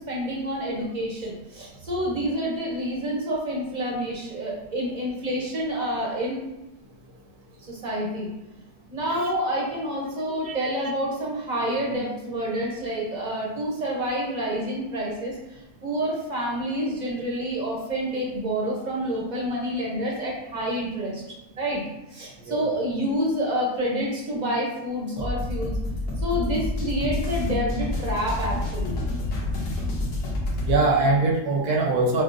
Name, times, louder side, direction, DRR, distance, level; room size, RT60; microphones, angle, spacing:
voice 1, 0.0-6.4 7.6-8.3 8.9-21.2 21.6-21.8 22.1-25.8 26.2-29.0, equal, 45° right, -4 dB, 0.6 m, -28 dB
sound 1, 25.2-30.8, left 2 dB, 80° left, 1.5 m, -28 dB
voice 2, 30.6-32.2, right 3 dB, 70° right, 0 dB, 1.0 m, -22 dB
6.0 x 2.0 x 2.5 m, 0.95 s
omnidirectional pair, 1.8 m